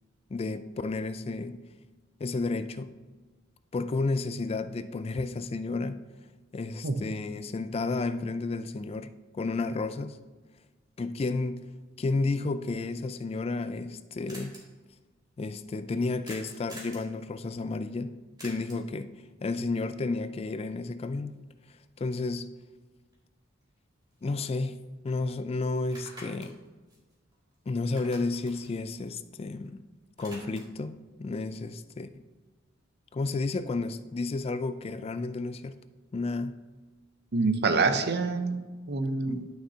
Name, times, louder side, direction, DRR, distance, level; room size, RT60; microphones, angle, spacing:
voice 1, 0.3-1.6 2.2-2.9 3.7-6.0 6.5-10.2 11.0-11.7 12.0-14.6 15.4-18.2 18.4-21.3 22.0-22.5 24.2-24.8 25.0-26.6 27.7-29.8 30.2-32.1 33.1-35.8 36.1-36.6 39.3-39.5, left 3 dB, 30° left, 0.3 m, -32 dB
sound 1, 14.3-14.6 16.2-17.1 18.4-18.9 23.1-23.2 23.6-24.8 25.1-25.2 25.8-27.6 27.8-29.7 30.0-30.8, equal, 20° right, 2.3 m, -48 dB
voice 2, 37.3-39.4, right 4 dB, 55° right, 0.7 m, -27 dB
11.0 x 6.3 x 2.8 m
head